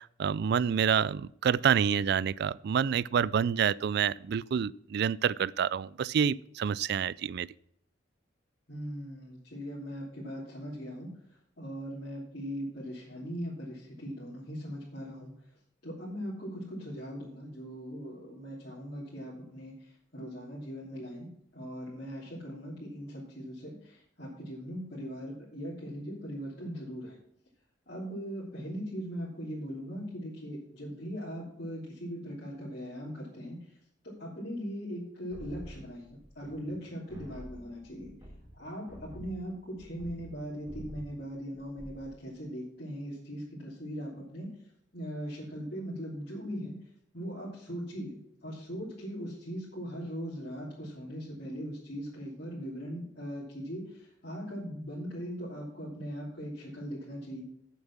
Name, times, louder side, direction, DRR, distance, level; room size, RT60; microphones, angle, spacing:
voice 1, 0.0-7.5, right 7 dB, 55° right, 0.3 m, -28 dB
voice 2, 8.7-15.6 15.8-21.3 21.5-27.2 27.9-33.8 34.0-38.1 38.5-44.5 44.9-46.8 47.1-57.4, equal, 55° left, 3.2 m, -40 dB
sound 1, 35.3-36.8 37.1-40.4 40.7-41.2 41.6-42.1, equal, 20° right, 2.7 m, -48 dB
8.9 x 7.3 x 5.9 m
head